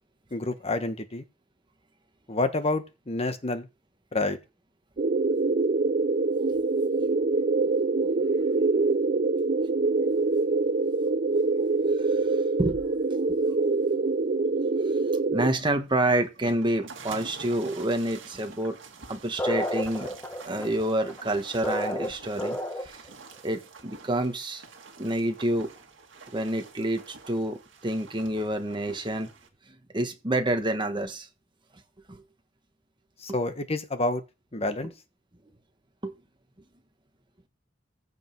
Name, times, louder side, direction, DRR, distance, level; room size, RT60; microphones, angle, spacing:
voice 1, 0.3-1.2 2.3-3.7 4.1-4.4 33.2-34.2 34.5-34.9, left 2 dB, 30° left, 1.2 m, -28 dB
sound 1, 5.0-15.5, right 3 dB, 45° right, 0.5 m, -25 dB
voice 2, 15.3-18.8 19.1-20.1 20.4-22.6 22.8-23.0 23.4-24.6 25.0-25.7 26.3-29.3 29.9-31.3 32.1-32.2 36.0-36.1, right 1 dB, 25° right, 1.4 m, -28 dB
sound 2, 15.4-29.5, right 4 dB, 70° right, 2.1 m, -47 dB
sound 3, 19.4-23.1, equal, 10° left, 1.6 m, -31 dB
15.0 x 5.3 x 4.6 m
head